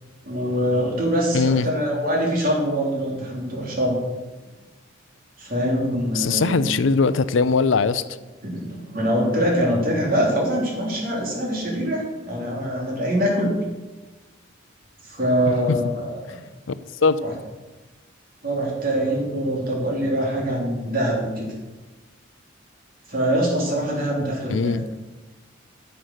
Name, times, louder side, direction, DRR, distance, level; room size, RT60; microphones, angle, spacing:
voice 1, 0.2-4.0 5.4-6.8 8.4-13.5 15.0-16.4 17.2-17.3 18.4-21.5 23.1-24.8, equal, 45° right, -2 dB, 3.3 m, -24 dB
voice 2, 1.3-1.7 6.1-8.0 16.7-16.8 17.0-17.2 24.5-24.9, left 4 dB, 70° left, 14 dB, 0.5 m, -20 dB
9.9 x 7.9 x 6.6 m, 1.2 s
head